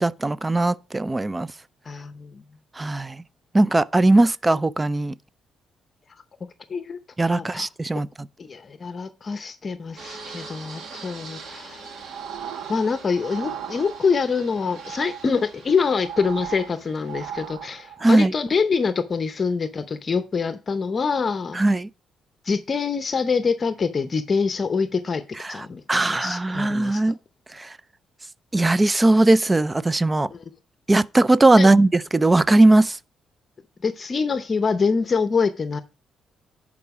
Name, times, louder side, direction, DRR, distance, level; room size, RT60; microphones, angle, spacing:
voice 1, 0.0-1.5 2.8-3.2 3.5-5.1 7.2-8.1 18.0-18.3 21.6-21.9 25.5-25.6 25.9-27.2 27.6-27.7 28.5-30.3 30.9-33.0, right 2 dB, 20° right, 0.4 m, -19 dB
voice 2, 1.8-2.4 6.7-7.0 7.3-7.7 8.4-11.9 12.7-21.6 22.4-27.1 30.3-30.4 31.6-31.7 33.8-35.8, left 5 dB, 40° left, 0.7 m, -25 dB
Fixed-wing aircraft airplane, 10.0-17.5, right 4 dB, 65° right, 1.7 m, -43 dB
sound 1, 11.7-14.3 14.7-18.2, right 9 dB, 80° right, 0.6 m, -37 dB
11.0 x 4.9 x 4.7 m
cardioid pair, 90°, 0 cm